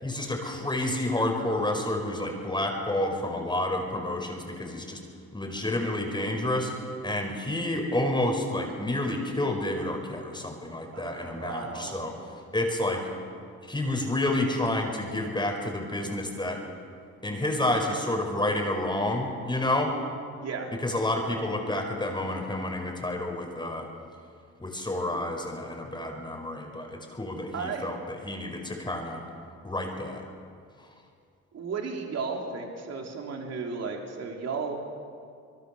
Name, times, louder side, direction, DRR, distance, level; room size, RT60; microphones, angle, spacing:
voice 1, 0.0-5.0 5.3-6.7 7.0-12.1 12.5-13.1 13.7-16.6 17.2-19.9 20.8-23.9 24.6-28.0 28.2-29.2 29.6-30.2, left 1 dB, 15° left, 2 dB, 5.3 m, -29 dB
voice 2, 10.9-12.0 20.4-20.7 27.5-27.9 31.5-34.9, right 4 dB, 55° right, 1 dB, 3.5 m, -34 dB
26.5 x 22.0 x 6.9 m, 2.3 s
cardioid pair, 90°, 30 cm